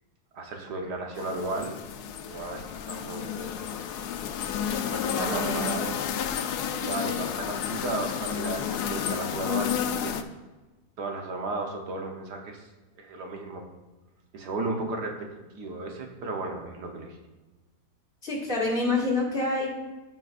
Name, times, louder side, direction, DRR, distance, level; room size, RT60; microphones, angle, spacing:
voice 1, 0.3-1.7 2.2-3.7 4.9-5.9 6.8-10.1 11.0-12.7 13.0-13.6 14.3-15.3 15.5-17.2, right 2 dB, 75° right, 2 dB, 1.6 m, -34 dB
sound 1, 1.2-10.2, left 8 dB, 75° left, 1.1 m, -31 dB
voice 2, 4.7-5.9 18.2-19.7, left 2 dB, 35° left, -4 dB, 2.1 m, -28 dB
14.5 x 5.3 x 2.5 m, 1.2 s
omnidirectional pair, 1.8 m